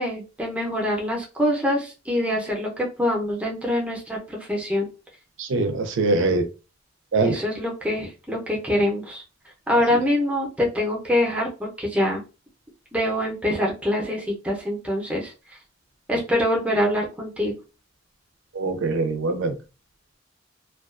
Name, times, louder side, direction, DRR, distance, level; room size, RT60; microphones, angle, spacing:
voice 1, 0.0-4.9 7.2-9.2 9.7-12.2 12.9-15.3 16.1-17.6, left 1 dB, 5° right, -1 dB, 0.6 m, -24 dB
voice 2, 5.4-6.4 7.1-7.4 18.6-19.5, right 3 dB, 85° right, 8 dB, 0.5 m, -23 dB
2.3 x 2.3 x 2.3 m, 0.31 s
head